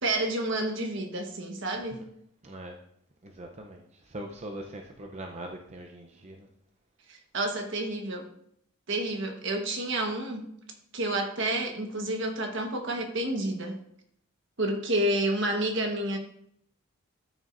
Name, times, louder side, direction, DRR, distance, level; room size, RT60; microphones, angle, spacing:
voice 1, 0.0-2.0 7.1-8.2 8.9-10.4 10.9-13.8 14.6-16.2, right 1 dB, 60° right, 4 dB, 1.3 m, -29 dB
voice 2, 2.4-2.7 3.2-6.5, right 1 dB, 35° right, 2 dB, 0.7 m, -42 dB
13.0 x 6.2 x 2.6 m, 0.70 s
head